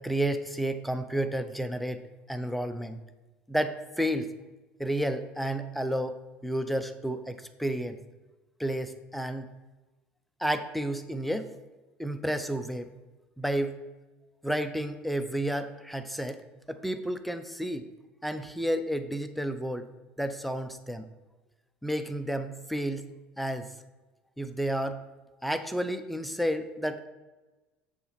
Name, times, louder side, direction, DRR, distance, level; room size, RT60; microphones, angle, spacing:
voice 1, 0.0-2.0 2.3-3.0 3.5-4.3 4.8-8.0 8.6-9.5 10.4-11.5 12.0-12.9 13.4-13.8 14.4-16.4 16.7-17.9 18.2-19.9 20.2-21.1 21.8-23.1 23.4-23.7 24.4-25.0 25.4-27.1, right 1 dB, ahead, 9 dB, 0.6 m, -31 dB
6.9 x 3.7 x 5.9 m, 1.2 s
hypercardioid pair, 80°, 6 cm